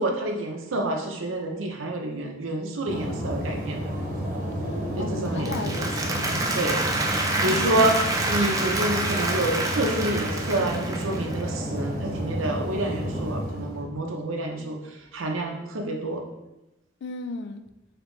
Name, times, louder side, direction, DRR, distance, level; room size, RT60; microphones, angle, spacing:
voice 1, 0.0-3.9 5.0-5.8 6.5-6.8 7.4-8.0 8.3-14.8 15.1-16.2, right 1 dB, 80° right, 2 dB, 0.7 m, -28 dB
sound 1, 2.9-13.9, equal, 40° right, 0.9 m, -31 dB
voice 2, 5.0-6.3 7.4-7.8 17.0-17.7, left 3 dB, 60° left, 9 dB, 0.3 m, -35 dB
Applause, 5.2-11.5, right 2 dB, 15° right, 0.4 m, -28 dB
5.1 x 3.0 x 3.1 m, 0.96 s
head